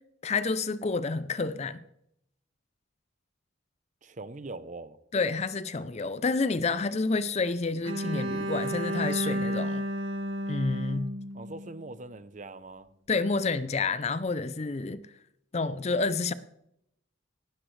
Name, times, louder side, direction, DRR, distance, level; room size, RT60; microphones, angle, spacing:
voice 1, 0.2-1.8 5.1-9.8 10.5-11.1 13.1-15.0 15.5-16.3, left 3 dB, 30° left, 0.5 m, -29 dB
voice 2, 4.0-5.0 11.3-12.9, right 2 dB, 35° right, 0.7 m, -42 dB
Bowed string instrument, 7.8-11.9, equal, 80° right, 1.3 m, -32 dB
18.0 x 12.5 x 3.2 m
head